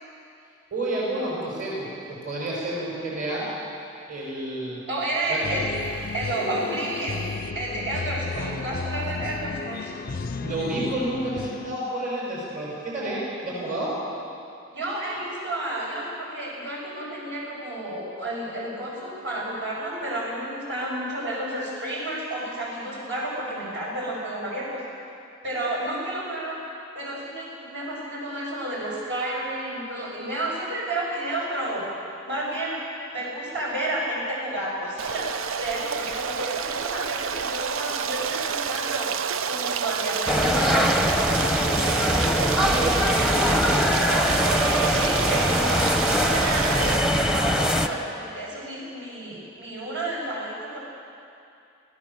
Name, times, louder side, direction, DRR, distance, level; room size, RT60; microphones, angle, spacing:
voice 1, 0.7-3.5 4.1-4.8 5.3-5.6 10.4-13.9 42.6-43.5, right 1 dB, 45° right, -5 dB, 6.7 m, -30 dB
voice 2, 4.9-5.7 6.1-7.3 7.5-9.9 14.7-24.8 25.4-26.6 26.9-31.8 32.2-32.8 33.1-35.3 35.6-39.1 39.4-41.3 44.0-50.8, right 1 dB, 65° right, -5 dB, 7.0 m, -31 dB
sound 1, 5.4-11.8, left 4 dB, 45° left, 0.5 m, -33 dB
Stream, 35.0-47.0, right 7 dB, 90° right, 0.5 m, -28 dB
sound 2, 40.3-47.9, equal, 5° right, 0.9 m, -22 dB
27.5 x 16.5 x 7.4 m, 2.5 s
head